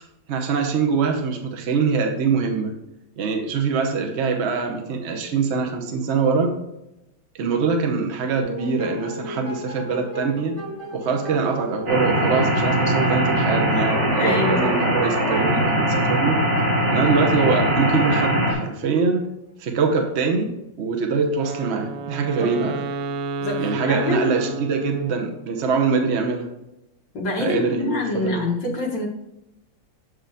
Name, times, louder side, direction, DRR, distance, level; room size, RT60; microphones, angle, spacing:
voice 1, 0.3-2.8 3.2-6.5 7.3-10.6 10.9-16.4 16.9-19.2 19.6-20.5 20.8-22.8 23.6-26.5 27.4-28.5, right 5 dB, 60° right, 3 dB, 0.7 m, -23 dB
sound 1, 8.4-18.9, right 1 dB, 20° right, 1.0 m, -36 dB
sound 2, 11.9-18.5, right 1 dB, 35° right, 1.8 m, -21 dB
voice 2, 14.2-14.7 22.4-22.5 23.4-24.3 27.1-29.1, left 2 dB, 60° left, -1 dB, 2.0 m, -25 dB
Wind instrument woodwind instrument, 21.3-25.5, right 3 dB, 85° right, 1.4 m, -31 dB
7.5 x 5.0 x 3.4 m, 0.88 s
omnidirectional pair, 2.2 m